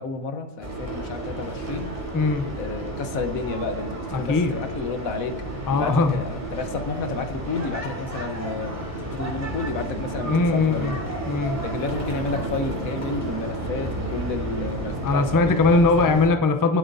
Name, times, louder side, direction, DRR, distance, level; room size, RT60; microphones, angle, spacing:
voice 1, 0.0-1.9 2.6-11.1 11.6-15.5 16.0-16.2, left 3 dB, 85° left, 7 dB, 1.5 m, -31 dB
sound 1, 0.6-16.3, right 1 dB, 10° right, 2.5 m, -32 dB
voice 2, 2.1-2.5 4.1-4.5 5.7-6.2 10.2-11.0 11.3-11.6 15.0-16.8, left 3 dB, 25° left, 7 dB, 0.4 m, -20 dB
19.5 x 7.9 x 2.7 m, 0.95 s
omnidirectional pair, 1.4 m